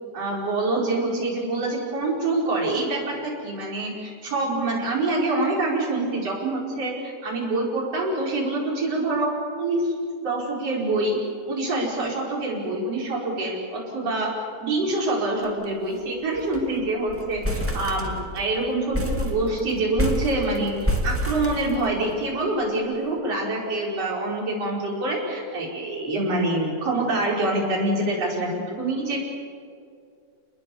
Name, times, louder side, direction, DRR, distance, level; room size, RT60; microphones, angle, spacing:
voice 1, 0.1-9.3 9.6-9.9 10.2-11.2 11.5-14.3 14.6-17.4 17.7-20.7 21.0-28.5 28.8-29.2, right 2 dB, 40° right, -3 dB, 6.1 m, -25 dB
sound 1, 15.4-15.6 15.9-16.0 16.3-16.7 17.1-18.5 18.9-22.2, left 1 dB, 15° right, 0.5 m, -28 dB
29.0 x 20.5 x 7.2 m, 2.3 s
omnidirectional pair, 4.6 m